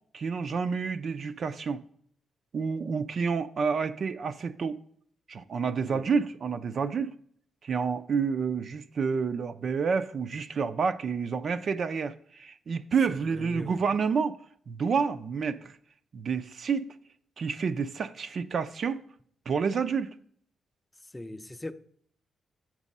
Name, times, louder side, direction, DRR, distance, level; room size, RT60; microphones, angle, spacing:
voice 1, 0.1-1.8 2.5-4.8 5.3-7.1 7.6-14.4 14.7-15.7 16.1-16.9 17.4-19.0 19.5-20.1, right 5 dB, 55° right, 0.4 m, -29 dB
voice 2, 13.1-13.8 21.1-21.7, left 1 dB, 15° left, 0.5 m, -40 dB
7.4 x 6.1 x 5.3 m
cardioid pair, 90°, 0 cm